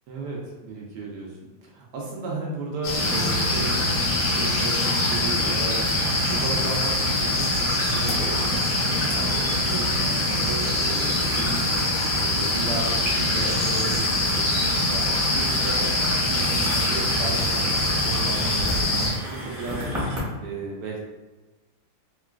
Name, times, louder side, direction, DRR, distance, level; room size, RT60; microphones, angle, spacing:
voice 1, 0.1-5.8 6.1-11.7 12.2-14.5 14.9-21.0, right 3 dB, 70° right, -2 dB, 1.1 m, -35 dB
sound 1, 2.8-19.1, left 2 dB, 75° left, 1.4 m, -24 dB
sound 2, 2.9-20.2, equal, 40° right, 0.9 m, -32 dB
3.8 x 2.3 x 2.3 m, 1.1 s
omnidirectional pair, 2.1 m